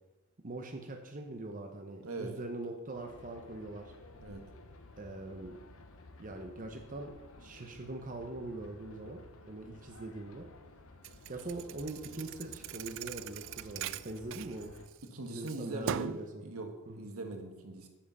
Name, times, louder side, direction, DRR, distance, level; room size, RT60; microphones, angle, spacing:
voice 1, 0.4-3.9 5.0-5.6 6.2-7.1 7.4-9.2 9.4-10.5 11.3-14.7 15.3-16.5 16.9-17.1, right 2 dB, 40° right, 3 dB, 0.9 m, -42 dB
voice 2, 2.0-2.3 4.2-4.4 15.1-17.9, right 2 dB, 75° right, 4 dB, 1.4 m, -41 dB
sound 1, 2.9-14.9, left 2 dB, 65° left, 0.9 m, -54 dB
Thump thud, 11.0-15.1 15.5-16.3, right 10 dB, 60° right, 0.3 m, -40 dB
8.7 x 7.5 x 5.5 m, 1.1 s
head